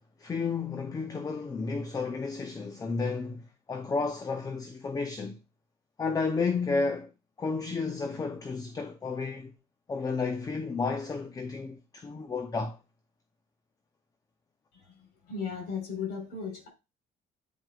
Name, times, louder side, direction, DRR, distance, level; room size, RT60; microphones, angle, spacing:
voice 1, 0.2-5.4 6.0-7.1 7.4-9.5 9.9-12.8, left 4 dB, 20° left, 0.6 m, -32 dB
voice 2, 14.7-16.7, left 6 dB, 75° left, 4.0 m, -36 dB
9.3 x 4.5 x 2.4 m
cardioid pair, 110°, 17 cm